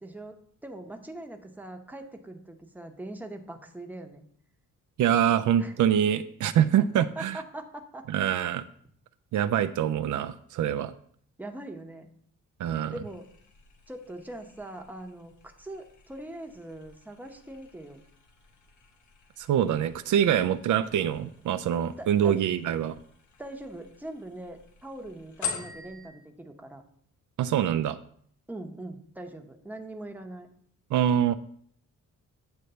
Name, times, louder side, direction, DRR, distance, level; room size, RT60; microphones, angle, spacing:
voice 1, 0.0-0.4 0.6-4.2 5.6-5.8 6.8-8.0 11.4-12.1 12.9-13.3 13.9-18.0 20.2-20.4 22.0-22.4 23.4-26.8 28.5-30.5, right 1 dB, 5° right, 4 dB, 0.8 m, -42 dB
voice 2, 5.0-7.4 8.1-8.6 9.3-10.9 12.6-12.9 19.4-22.9 27.4-28.0 30.9-31.3, right 10 dB, 70° right, 10 dB, 0.5 m, -25 dB
sound 1, 13.0-26.1, left 6 dB, 65° left, 1.2 m, -45 dB
8.9 x 3.2 x 6.7 m, 0.62 s
wide cardioid pair, 145°, 32 cm